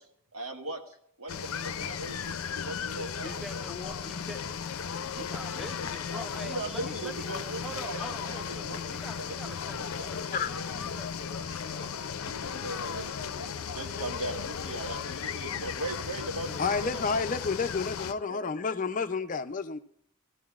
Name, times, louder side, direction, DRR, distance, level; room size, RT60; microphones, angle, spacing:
voice 1, 0.3-3.4 5.2-5.3 6.4-10.4 11.2-11.9 12.2-16.6 16.9-17.3 18.3-18.5, right 2 dB, 80° right, 1.8 m, -40 dB
sound 1, 1.3-18.1, left 7 dB, 90° left, 0.5 m, -36 dB
voice 2, 3.2-7.3 7.6-12.0 14.6-15.7 16.4-17.0, equal, ahead, 0.9 m, -45 dB
voice 3, 16.6-19.8, left 5 dB, 40° left, 0.5 m, -30 dB
19.0 x 14.0 x 2.4 m
head